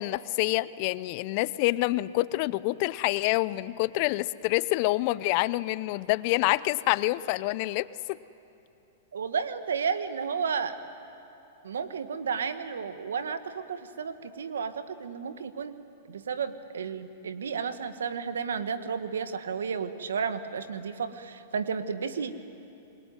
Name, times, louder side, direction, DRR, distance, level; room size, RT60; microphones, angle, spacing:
voice 1, 0.0-7.9, left 19 dB, 50° left, 18 dB, 0.6 m, -27 dB
voice 2, 9.1-10.8 11.6-15.8 16.1-22.3, right 6 dB, 85° right, 10 dB, 1.5 m, -32 dB
27.0 x 22.0 x 9.6 m, 2.9 s
hypercardioid pair, 120°, 0 cm